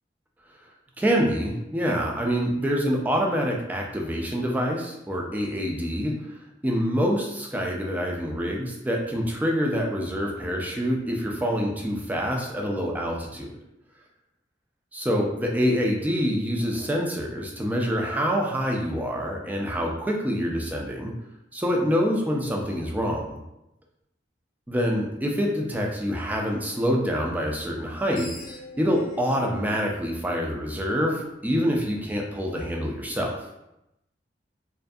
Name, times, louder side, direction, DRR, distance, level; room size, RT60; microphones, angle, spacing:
voice 1, 1.0-6.1 6.6-13.5 14.9-21.1 21.5-23.4 24.7-28.3 28.8-33.4, equal, 10° right, -1 dB, 0.3 m, -26 dB
Screech, 27.8-31.0, left 1 dB, 50° left, 0.5 m, -45 dB
2.5 x 2.5 x 2.2 m, 0.87 s
head